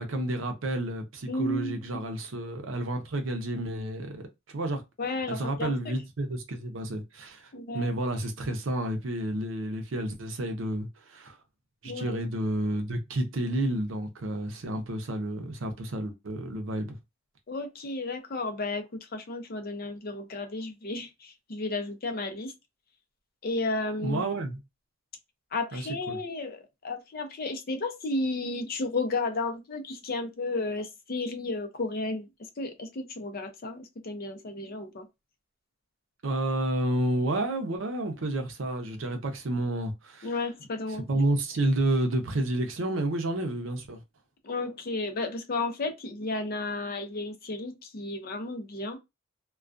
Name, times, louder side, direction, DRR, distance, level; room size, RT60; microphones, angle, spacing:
voice 1, 0.0-4.8 5.3-11.4 11.8-16.9 24.0-24.6 25.7-26.2 36.2-40.3 40.9-44.0, right 1 dB, 85° right, 0.6 m, -30 dB
voice 2, 1.3-2.1 5.0-5.9 7.5-7.9 11.8-12.2 17.5-18.8 19.1-22.5 23.4-24.2 25.5-32.3 32.6-35.0 40.2-41.0 44.4-49.0, left 2 dB, 50° left, 0.5 m, -33 dB
2.3 x 2.2 x 2.4 m
head